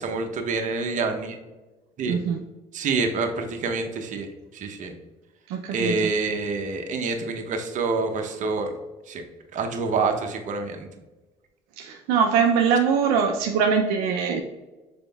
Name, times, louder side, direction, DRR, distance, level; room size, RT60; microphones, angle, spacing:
voice 1, 0.0-1.4 2.0-2.2 2.7-4.3 4.5-4.9 5.7-8.7 9.1-9.2 9.5-10.9, right 4 dB, 55° right, 4 dB, 0.8 m, -27 dB
voice 2, 2.0-2.4 5.5-6.1 11.8-14.4, right 6 dB, 80° right, 3 dB, 0.5 m, -22 dB
5.1 x 4.2 x 2.3 m, 1.2 s
supercardioid pair, 80°, 15 cm